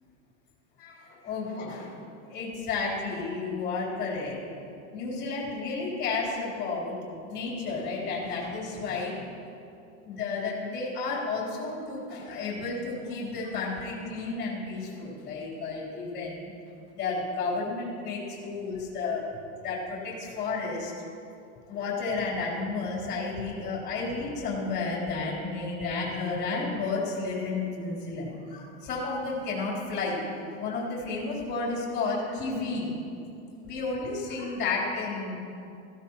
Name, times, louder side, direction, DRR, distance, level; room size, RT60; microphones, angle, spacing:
voice 1, 0.8-1.9 2.3-4.4 4.9-7.0 7.3-9.2 10.0-16.5 16.9-19.2 19.6-20.9 21.7-30.2 30.6-32.9 33.6-35.3, left 3 dB, 25° left, -5 dB, 3.4 m, -32 dB
16.5 x 15.5 x 2.9 m, 2.6 s
supercardioid pair, 165°, 37 cm